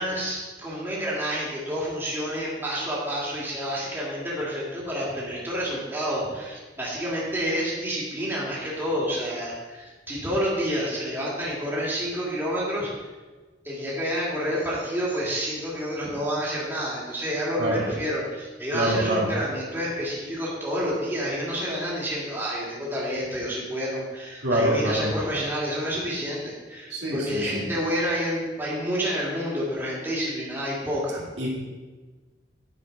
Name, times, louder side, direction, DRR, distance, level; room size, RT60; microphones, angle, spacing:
voice 1, 0.0-12.9 13.6-31.2, equal, 10° right, -6 dB, 2.4 m, -29 dB
voice 2, 18.7-19.3 24.4-25.1 26.9-27.7 31.4-31.5, right 1 dB, 70° right, -4 dB, 2.2 m, -25 dB
10.0 x 6.8 x 4.1 m, 1.3 s
head